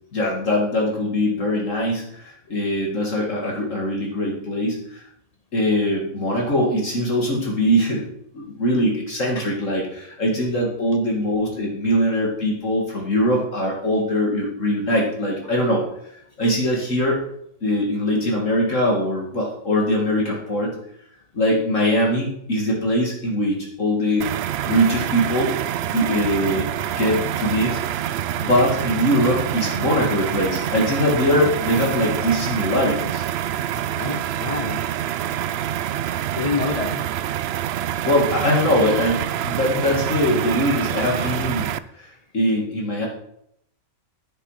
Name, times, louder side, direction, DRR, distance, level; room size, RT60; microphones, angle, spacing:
voice 1, 0.1-5.0 5.5-8.1 8.3-15.8 16.4-17.2 17.6-20.8 21.3-24.3 24.7-25.5 25.9-27.8 28.4-33.2 38.1-43.1, equal, 55° left, -2 dB, 2.4 m, -22 dB
sound 1, 24.2-41.8, right 11 dB, 70° right, 0.6 m, -26 dB
voice 2, 33.7-34.9 36.3-37.1, left 4 dB, 40° left, 8 dB, 0.5 m, -28 dB
10.5 x 9.7 x 4.9 m, 0.73 s
omnidirectional pair, 1.6 m